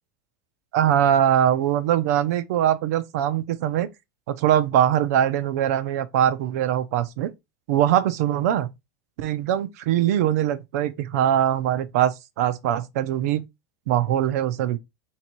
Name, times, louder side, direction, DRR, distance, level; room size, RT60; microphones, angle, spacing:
voice 1, 0.7-3.9 4.3-7.3 7.7-8.7 9.2-13.4 13.9-14.8, right 11 dB, 75° right, 0.6 m, -22 dB
3.8 x 2.9 x 4.4 m
supercardioid pair, 160°, 9 cm